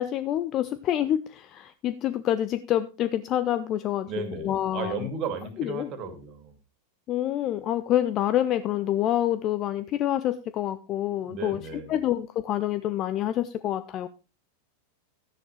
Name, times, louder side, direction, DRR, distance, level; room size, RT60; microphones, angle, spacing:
voice 1, 0.0-4.1 4.4-5.1 5.6-5.9 7.1-11.6 11.9-14.1, left 12 dB, 35° left, 14 dB, 0.5 m, -27 dB
voice 2, 4.1-6.5 11.3-12.0, right 4 dB, 35° right, 8 dB, 2.3 m, -34 dB
13.0 x 10.5 x 3.2 m, 0.31 s
figure-of-eight pair, 90°, 0 cm